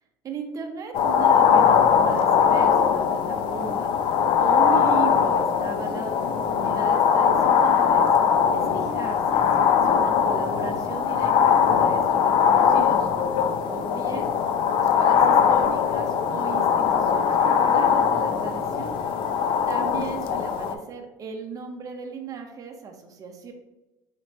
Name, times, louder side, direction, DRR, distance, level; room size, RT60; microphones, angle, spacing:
voice 1, 0.2-8.1 8.5-13.1 13.6-14.3 14.6-18.9 19.7-23.5, right 5 dB, 35° right, 3 dB, 0.7 m, -36 dB
sound 1, 0.9-20.8, left 7 dB, 60° left, 0.4 m, -21 dB
4.2 x 3.1 x 3.0 m, 1.0 s
supercardioid pair, 100°, 9 cm